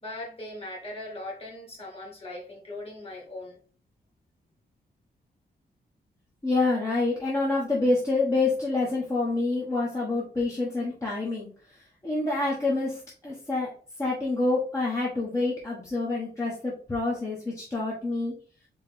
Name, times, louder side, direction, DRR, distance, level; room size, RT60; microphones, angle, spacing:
voice 1, 0.0-3.6, left 1 dB, 35° left, 2.1 m, -39 dB
voice 2, 6.4-13.7 14.0-18.3, left 2 dB, 15° left, 1.2 m, -27 dB
4.5 x 3.2 x 3.6 m
cardioid pair, 110°, 17 cm